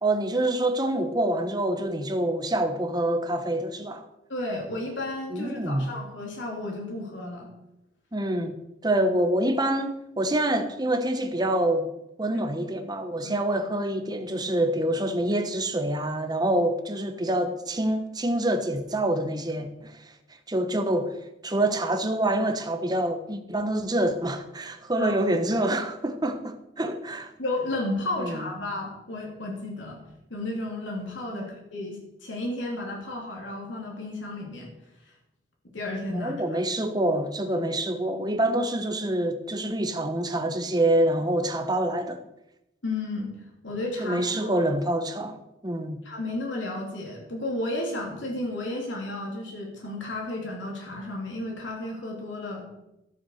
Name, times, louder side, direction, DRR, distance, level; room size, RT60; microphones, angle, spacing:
voice 1, 0.0-4.1 5.3-5.9 8.1-8.5 8.8-11.9 12.2-20.0 20.5-21.2 21.4-27.3 28.2-28.5 31.3-31.5 36.1-42.2 44.0-46.0, right 1 dB, 20° right, 1.0 m, -26 dB
voice 2, 4.3-7.5 13.2-13.3 25.0-25.1 27.4-30.0 30.3-34.7 35.7-36.3 42.8-43.3 43.6-44.6 46.0-52.7, left 2 dB, 85° left, 3.0 m, -33 dB
12.5 x 7.2 x 6.3 m
head